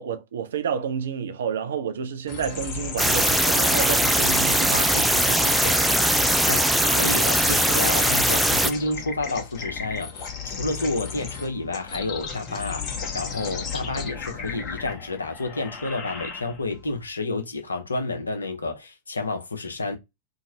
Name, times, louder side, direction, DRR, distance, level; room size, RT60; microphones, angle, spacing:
voice 1, 0.0-5.8, right 7 dB, 65° right, 0.5 m, -30 dB
sound 1, 2.3-16.8, left 6 dB, 35° left, 1.0 m, -35 dB
sound 2, 3.0-8.7, right 1 dB, 5° right, 0.4 m, -20 dB
voice 2, 6.5-20.0, left 2 dB, 75° left, 0.7 m, -30 dB
2.9 x 2.5 x 2.7 m
figure-of-eight pair, 90°, 0 cm